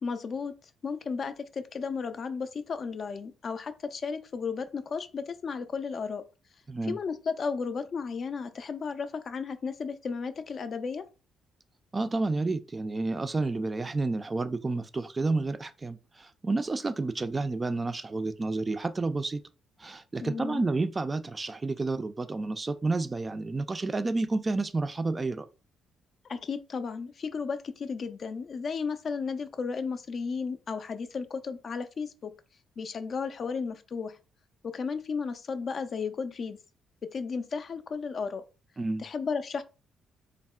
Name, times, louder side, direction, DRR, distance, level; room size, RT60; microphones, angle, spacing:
voice 1, 0.0-0.6 0.8-6.2 6.8-11.0 20.2-20.6 26.3-32.3 32.8-34.2 34.6-36.6 37.0-38.4 39.0-39.6, left 5 dB, 50° left, 0.3 m, -34 dB
voice 2, 6.7-7.0 11.9-19.4 19.8-25.5 38.8-39.1, right 3 dB, 30° right, 0.3 m, -30 dB
3.4 x 2.0 x 2.3 m
hypercardioid pair, 50°, 0 cm